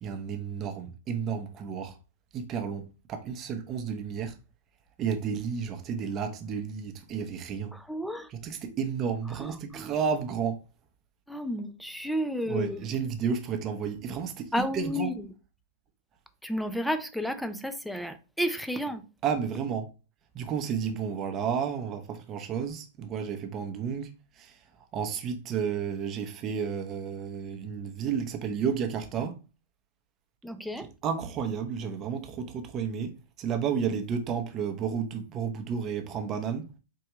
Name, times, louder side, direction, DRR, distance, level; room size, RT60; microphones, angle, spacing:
voice 1, 0.0-1.9 2.3-4.3 5.0-7.7 8.4-10.6 12.5-15.1 19.2-19.9 20.3-24.1 24.4-24.6 24.9-29.4 31.0-36.7, right 7 dB, 30° right, 0.7 m, -32 dB
voice 2, 7.7-8.3 9.3-9.9 11.3-12.8 14.5-15.3 16.4-19.1 30.4-30.9, equal, ahead, 0.4 m, -32 dB
4.5 x 2.3 x 3.0 m
hypercardioid pair, 135°, 0 cm